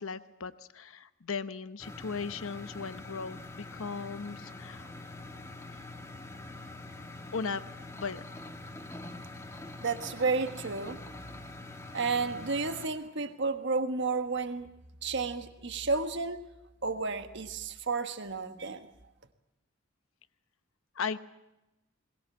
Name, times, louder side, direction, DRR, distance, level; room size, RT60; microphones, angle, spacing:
voice 1, 0.0-4.9 7.3-7.7 8.0-8.2 21.0-21.2, left 5 dB, 80° left, 12 dB, 0.9 m, -37 dB
sound 1, 1.8-12.9, left 2 dB, 15° left, 1.7 m, -45 dB
voice 2, 9.8-11.0 11.9-14.7 15.0-16.4 16.8-18.9, right 4 dB, 60° right, 8 dB, 1.4 m, -31 dB
21.5 x 20.5 x 7.5 m, 0.94 s
head